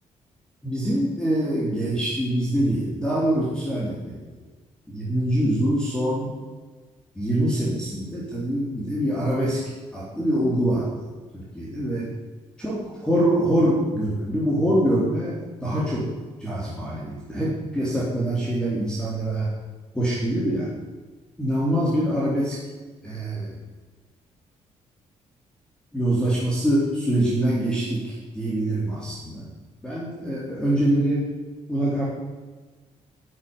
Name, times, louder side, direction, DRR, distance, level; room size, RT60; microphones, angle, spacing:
voice 1, 0.6-4.4 4.9-6.3 7.1-9.6 9.9-11.1 11.3-12.1 12.6-16.1 16.4-19.5 19.9-20.7 21.4-22.6 23.0-23.6 25.9-29.5 29.8-31.3 31.7-32.0, right 1 dB, 5° left, -7 dB, 3.9 m, -24 dB
13.0 x 9.7 x 9.8 m, 1.3 s
cardioid pair, 165°, 12 cm